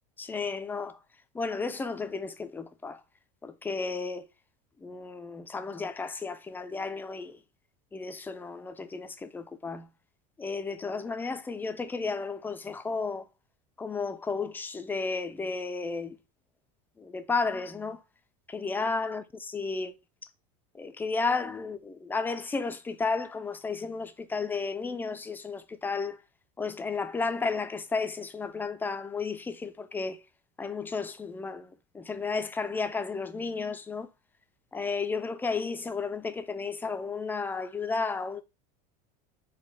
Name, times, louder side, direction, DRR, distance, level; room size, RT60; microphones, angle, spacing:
voice 1, 0.2-1.0 1.3-3.0 3.4-4.3 4.8-7.4 7.9-9.9 10.4-13.3 13.8-16.2 17.0-18.0 18.5-19.9 20.7-26.2 26.6-30.2 30.6-34.1 34.7-38.4, left 4 dB, 10° left, 0.3 m, -33 dB
3.9 x 2.2 x 3.2 m
supercardioid pair, 125°, 19 cm